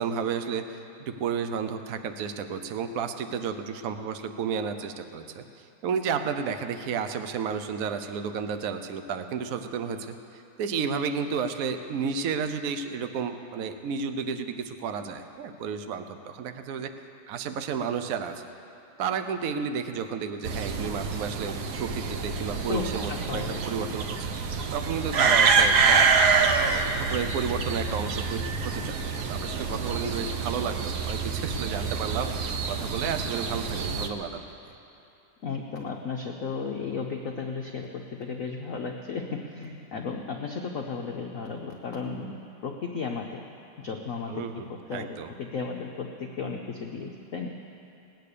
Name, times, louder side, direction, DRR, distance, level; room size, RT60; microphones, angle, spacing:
voice 1, 0.0-16.9 17.3-18.4 19.0-24.3 24.7-26.1 26.5-34.7 44.3-45.3, right 6 dB, 75° right, 9 dB, 0.7 m, -32 dB
sound 1, 20.4-34.1, right 5 dB, 60° right, 1.2 m, -26 dB
voice 2, 22.7-23.6 25.1-25.3 35.4-43.4 43.8-47.5, left 5 dB, 65° left, 2 dB, 0.8 m, -34 dB
18.5 x 9.2 x 6.7 m, 2.9 s
omnidirectional pair, 2.4 m